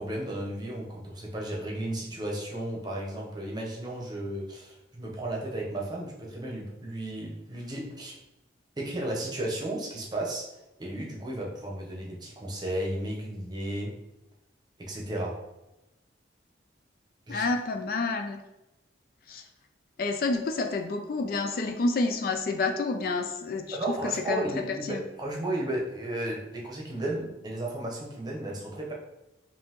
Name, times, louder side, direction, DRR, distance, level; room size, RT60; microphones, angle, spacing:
voice 1, 0.0-8.2 8.8-10.5 10.8-14.0 14.8-15.4 17.3-17.5 23.7-28.9, right 1 dB, 20° right, -3 dB, 0.8 m, -34 dB
voice 2, 17.3-18.4 19.3-19.4 20.0-23.8 24.3-24.5 24.8-25.0, left 3 dB, 50° left, 5 dB, 0.3 m, -29 dB
5.3 x 2.7 x 2.9 m, 0.98 s
head